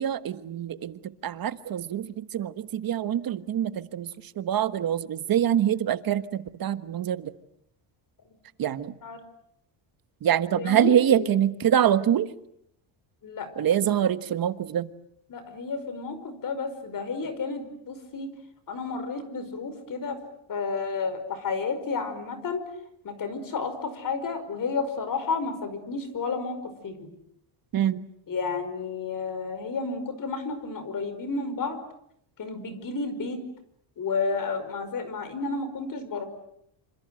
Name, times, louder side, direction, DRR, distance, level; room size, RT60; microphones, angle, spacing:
voice 1, 0.0-4.1 4.4-7.3 8.6-8.9 10.2-12.3 13.6-14.9 27.7-28.0, right 10 dB, 45° right, 13 dB, 1.4 m, -25 dB
voice 2, 8.7-9.2 10.5-11.3 13.2-13.5 15.3-18.3 18.7-20.2 20.5-22.6 23.0-27.1 28.3-31.8 32.4-33.4 34.0-36.3, left 4 dB, 40° left, 11 dB, 5.3 m, -31 dB
27.0 x 27.0 x 7.8 m, 0.72 s
cardioid pair, 125°, 48 cm